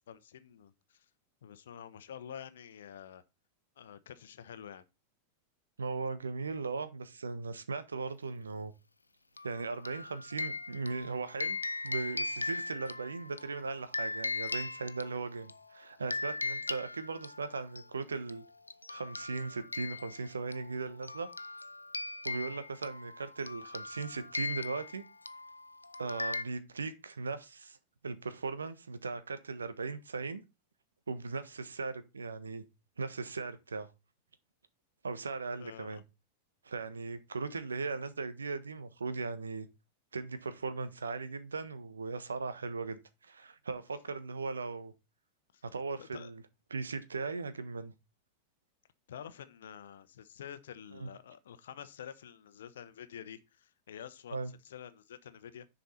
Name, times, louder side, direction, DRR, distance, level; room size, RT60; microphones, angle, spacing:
voice 1, 0.1-1.0 1.4-3.2 3.8-4.8 35.6-36.0 45.5-45.6 46.0-46.3 49.1-55.7, left 9 dB, 60° left, 0.9 m, -48 dB
voice 2, 5.8-8.7 9.4-11.6 11.8-18.4 18.9-21.3 22.2-25.0 26.0-27.8 28.0-30.4 31.1-32.6 33.0-33.9 35.0-36.0 36.6-39.7 40.1-44.9 45.6-46.4 46.7-47.9 50.9-51.1 54.3-54.5, right 4 dB, 75° right, 1.2 m, -38 dB
sound 1, 9.4-15.6 16.1-17.8 18.3-18.4 18.7-26.4, left 3 dB, 80° left, 0.5 m, -39 dB
10.0 x 5.5 x 4.3 m
figure-of-eight pair, 90°, 0 cm